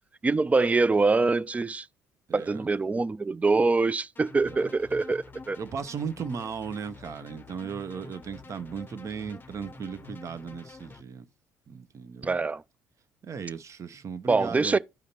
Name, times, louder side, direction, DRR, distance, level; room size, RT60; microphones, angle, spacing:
voice 1, 0.2-1.9 2.3-5.6 12.2-12.6 14.3-14.8, right 3 dB, 20° right, 0.3 m, -24 dB
voice 2, 2.3-2.7 4.5-4.7 5.6-11.3 11.7-12.4 13.2-14.8, right 6 dB, 45° right, 0.8 m, -36 dB
sound 1, 4.2-11.0, left 3 dB, 25° left, 0.7 m, -47 dB
13.0 x 5.0 x 2.8 m
hypercardioid pair, 60°, 7 cm